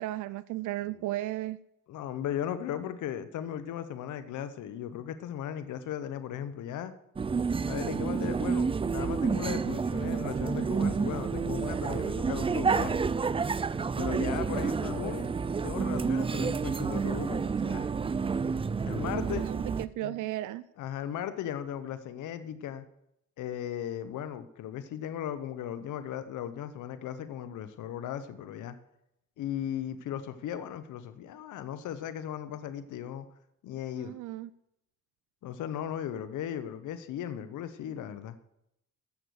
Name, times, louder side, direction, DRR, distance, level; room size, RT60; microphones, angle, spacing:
voice 1, 0.0-1.6 19.4-20.6 34.0-34.5, right 15 dB, 80° right, 0.5 m, -35 dB
voice 2, 1.9-6.9 7.6-13.0 14.0-15.3 15.6-17.9 18.8-19.4 20.0-20.2 20.8-22.8 23.4-28.8 29.4-33.3 33.6-34.1 35.4-38.4, left 10 dB, 80° left, 1.0 m, -37 dB
sound 1, 7.2-19.9, right 5 dB, 20° right, 0.4 m, -29 dB
14.0 x 6.8 x 6.4 m
cardioid pair, 90°, 30 cm